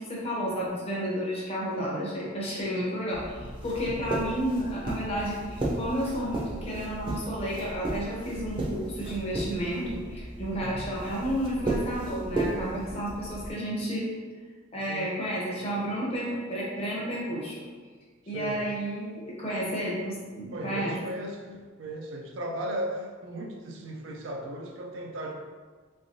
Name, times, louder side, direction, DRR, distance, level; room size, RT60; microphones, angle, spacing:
voice 1, 0.0-14.1 14.7-17.7 18.3-20.9, equal, 30° left, -6 dB, 0.8 m, -31 dB
sound 1, 3.1-13.5, right 1 dB, 25° right, 0.5 m, -34 dB
voice 2, 14.9-15.2 18.2-18.6 20.5-25.3, right 1 dB, 75° right, 0 dB, 0.4 m, -36 dB
3.3 x 3.2 x 2.6 m, 1.5 s
head